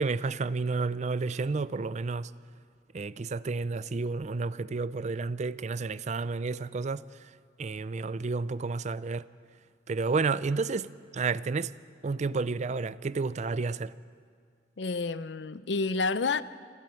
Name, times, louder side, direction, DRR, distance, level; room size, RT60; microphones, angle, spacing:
voice 1, 0.0-2.3 2.9-7.0 7.6-9.2 9.9-10.9 11.1-11.7 12.0-13.9, right 4 dB, 40° right, 0.4 m, -31 dB
voice 2, 14.8-16.4, left 4 dB, 70° left, 0.6 m, -29 dB
26.0 x 12.5 x 9.1 m
head